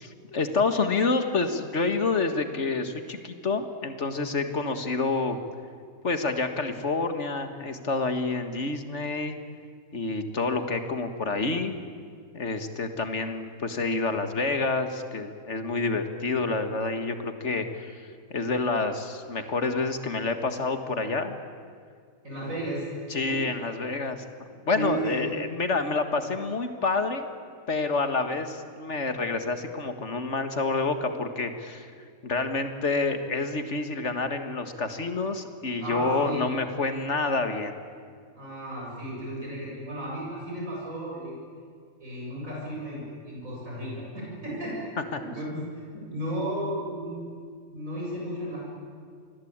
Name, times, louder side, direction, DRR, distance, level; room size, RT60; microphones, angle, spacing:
voice 1, 0.0-5.4 6.0-9.4 9.9-11.8 12.3-18.0 18.3-21.4 23.1-24.2 24.7-27.3 27.7-31.9 32.2-37.8 45.1-45.2, left 3 dB, 55° left, 8 dB, 2.0 m, -28 dB
voice 2, 22.2-22.9 23.3-23.4 24.7-25.2 35.8-36.4 38.3-41.3 42.0-44.8 45.2-45.6 45.9-47.2 47.7-48.6, right 1 dB, 70° right, -4 dB, 7.8 m, -34 dB
27.0 x 21.0 x 8.9 m, 2.2 s
omnidirectional pair, 1.4 m